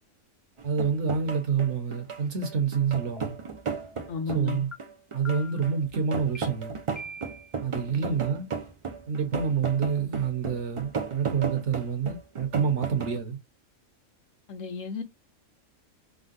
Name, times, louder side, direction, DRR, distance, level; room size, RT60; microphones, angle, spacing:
sound 1, 0.6-13.2, right 5 dB, 50° right, 0.4 m, -35 dB
voice 1, 0.6-3.3 4.3-4.7 5.1-6.7 7.6-8.5 9.1-13.4, right 6 dB, 65° right, 1.2 m, -27 dB
sound 2, 3.2-3.3 3.7-4.1 4.7-4.8 5.2-5.7 6.3-6.4 6.9-7.6, equal, ahead, 0.6 m, -43 dB
voice 2, 4.1-4.6 7.9-8.2 14.5-15.0, left 5 dB, 75° left, 1.2 m, -33 dB
3.7 x 2.2 x 2.5 m
omnidirectional pair, 1.4 m